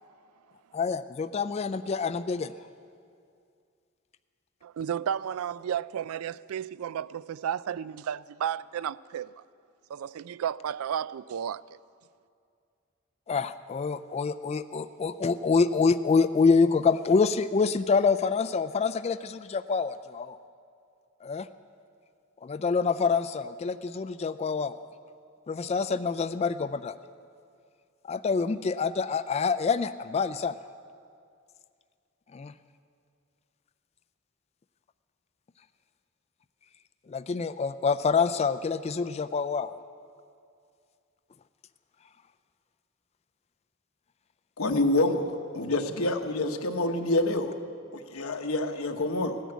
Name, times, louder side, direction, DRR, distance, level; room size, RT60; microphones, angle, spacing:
voice 1, 0.7-2.5 13.3-20.4 21.2-21.5 22.4-24.8 25.5-26.9 28.1-30.5 32.3-32.5 37.1-39.7, left 5 dB, 30° left, 0.3 m, -26 dB
voice 2, 4.6-9.3 9.9-11.6, right 9 dB, 85° right, 0.3 m, -33 dB
voice 3, 44.6-47.6 47.9-49.4, left 2 dB, 80° left, 1.1 m, -27 dB
17.0 x 10.0 x 8.2 m
head